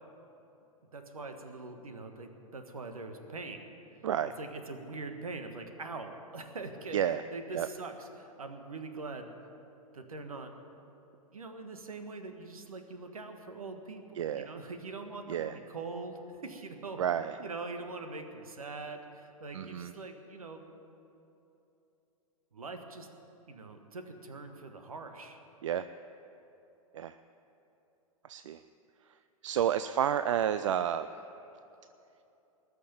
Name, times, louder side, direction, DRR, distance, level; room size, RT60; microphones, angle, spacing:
voice 1, 0.9-3.7 4.4-7.0 7.3-9.3 9.9-10.6 11.3-17.0 17.4-20.6 22.5-23.1 23.5-25.4, right 3 dB, 75° right, 6 dB, 1.4 m, -43 dB
voice 2, 14.2-14.5 15.3-15.5 17.0-17.3 19.5-19.9 25.6-25.9 26.9-27.1 28.3-28.6 29.4-31.1, right 10 dB, 55° right, 12 dB, 0.4 m, -30 dB
19.5 x 6.6 x 9.1 m, 3.0 s
figure-of-eight pair, 100°, 19 cm